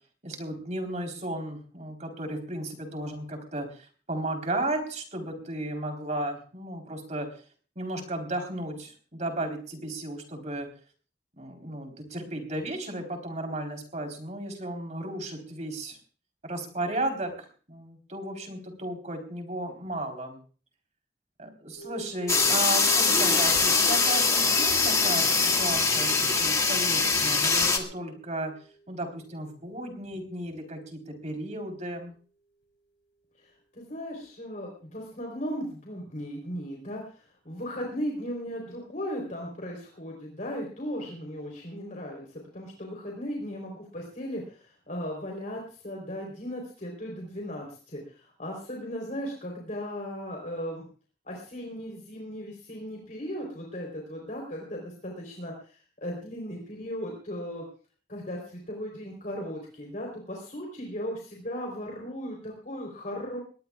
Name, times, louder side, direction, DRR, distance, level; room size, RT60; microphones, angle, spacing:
voice 1, 0.2-7.3 7.8-10.7 11.4-16.0 16.4-20.4 21.4-28.5 28.9-32.1, right 1 dB, 40° right, 3 dB, 4.0 m, -34 dB
sound 1, 21.8-30.7, right 3 dB, 80° left, 3.8 m, -48 dB
sound 2, 22.3-27.8, left 4 dB, 20° left, 1.9 m, -23 dB
voice 2, 33.7-50.9 51.3-57.6 58.1-63.4, equal, 45° left, 0 dB, 3.9 m, -37 dB
22.0 x 19.5 x 2.4 m, 0.40 s
head